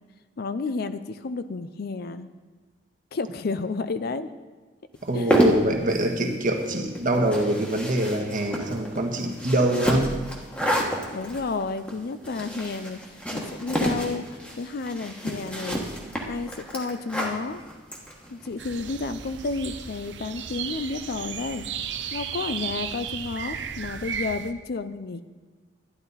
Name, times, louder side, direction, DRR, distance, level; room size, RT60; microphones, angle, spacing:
voice 1, 0.4-2.3 3.1-4.3 5.1-5.5 11.1-15.8 16.3-17.6 18.3-21.6 22.1-25.2, left 3 dB, 55° left, 12 dB, 0.5 m, -31 dB
sound 1, 5.0-18.5, equal, 5° left, 1.3 m, -29 dB
voice 2, 5.0-10.1, right 1 dB, 45° right, 2 dB, 1.4 m, -24 dB
sound 2, 18.6-24.5, right 7 dB, 70° right, 0.7 m, -34 dB
11.5 x 10.5 x 4.1 m, 1.3 s
head